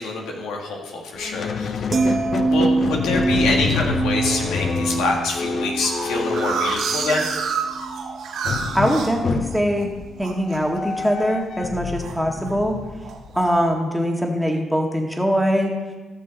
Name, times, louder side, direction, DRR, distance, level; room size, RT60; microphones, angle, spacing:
voice 1, 0.0-1.7 2.0-2.1 2.4-7.3, left 3 dB, 85° left, 1 dB, 1.8 m, -26 dB
Squeak, 1.2-7.5 8.4-13.6, left 5 dB, 55° left, 0.6 m, -28 dB
sound 1, 1.9-8.2 8.5-8.9, right 3 dB, 40° right, 1.1 m, -25 dB
sound 2, 2.2-2.9 3.5-3.9 4.3-4.4 4.6-4.7 5.0-9.8 10.2-10.6 10.9-11.3 11.6-12.5 13.0-13.5, right 5 dB, 75° right, 2.0 m, -29 dB
voice 2, 8.7-9.9 10.2-12.8 13.4-15.7, equal, ahead, 1 dB, 1.7 m, -22 dB
16.0 x 6.8 x 4.0 m, 1.2 s
cardioid pair, 90°, 0 cm